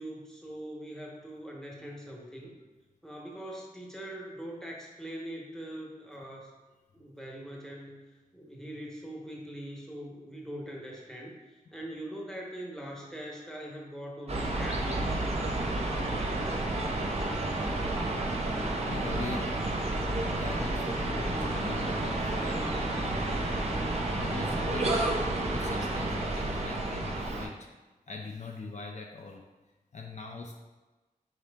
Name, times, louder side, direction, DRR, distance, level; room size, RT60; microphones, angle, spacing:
voice 1, 0.0-2.5 3.0-6.6 6.9-8.0 8.3-15.5 16.0-17.2 25.2-25.3, right 1 dB, 5° left, -2 dB, 0.9 m, -42 dB
sound 1, 14.3-27.5, right 2 dB, 45° right, 0.6 m, -30 dB
voice 2, 18.2-19.7 20.0-23.3 24.2-27.7 28.1-29.4 29.9-30.5, left 3 dB, 50° left, 1 dB, 0.4 m, -42 dB
4.6 x 2.8 x 3.4 m, 1.2 s
wide cardioid pair, 85°, 15 cm